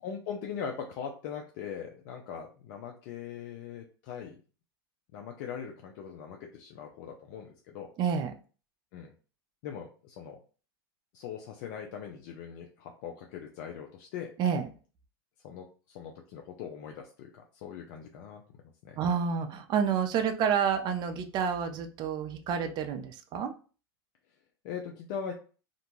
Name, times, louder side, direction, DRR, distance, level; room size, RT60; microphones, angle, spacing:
voice 1, 0.0-4.4 5.1-7.9 8.9-9.1 9.6-10.4 11.1-14.3 15.4-19.0 24.6-25.3, left 7 dB, 55° left, 2 dB, 0.5 m, -41 dB
voice 2, 8.0-8.3 14.4-14.7 19.0-23.5, right 7 dB, 35° right, 6 dB, 0.4 m, -29 dB
2.5 x 2.2 x 3.0 m, 0.37 s
hypercardioid pair, 105°, 13 cm